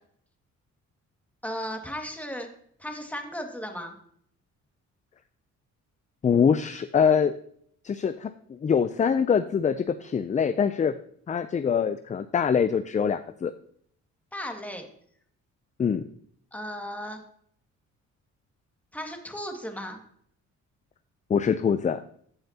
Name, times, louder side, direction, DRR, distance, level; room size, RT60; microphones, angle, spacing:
voice 1, 1.4-2.5 2.8-4.0 14.3-14.8 16.5-17.2 18.9-20.0, equal, 5° left, 3 dB, 1.9 m, -35 dB
voice 2, 6.2-7.4 7.8-11.0 11.3-13.5 15.8-16.1 21.3-22.0, left 7 dB, 25° left, 12 dB, 0.4 m, -24 dB
14.5 x 5.7 x 2.8 m, 0.63 s
cardioid pair, 90°, 30 cm